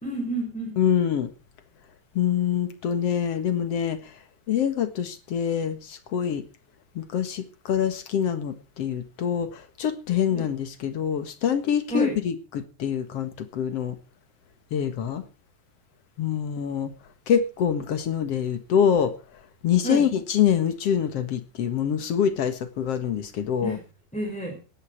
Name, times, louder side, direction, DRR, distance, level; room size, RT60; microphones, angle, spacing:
voice 1, 0.0-0.8 10.3-10.5 11.9-12.2 19.8-20.1 23.6-23.8 24.1-24.6, right 2 dB, ahead, 4.6 m, -30 dB
voice 2, 0.8-1.3 2.1-4.1 4.5-6.4 6.9-14.0 14.7-15.2 16.2-16.9 17.3-19.1 19.6-23.8, left 8 dB, 60° left, 1.6 m, -25 dB
19.0 x 12.0 x 4.6 m
omnidirectional pair, 5.2 m